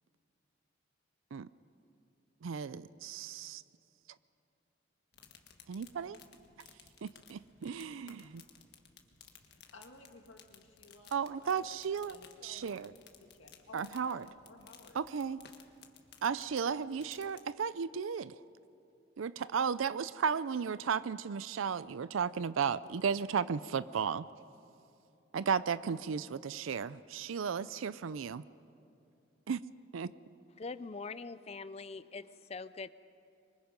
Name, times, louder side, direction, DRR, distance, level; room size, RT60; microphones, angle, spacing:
voice 1, 2.4-3.6 5.7-6.2 7.0-8.4 11.1-12.2 12.4-12.9 13.7-14.3 14.9-15.4 16.2-18.4 19.2-24.3 25.3-28.5 29.5-29.6 29.9-30.1, right 6 dB, 85° right, 16 dB, 0.4 m, -34 dB
sound 1, 5.1-17.4, left 7 dB, 55° left, 1.6 m, -59 dB
voice 2, 9.5-11.7 12.1-12.9 13.2-15.0, left 2 dB, 75° left, 4 dB, 2.0 m, -56 dB
voice 3, 30.6-32.9, left 4 dB, 30° left, 15 dB, 0.5 m, -43 dB
25.5 x 23.5 x 5.2 m, 2.6 s
head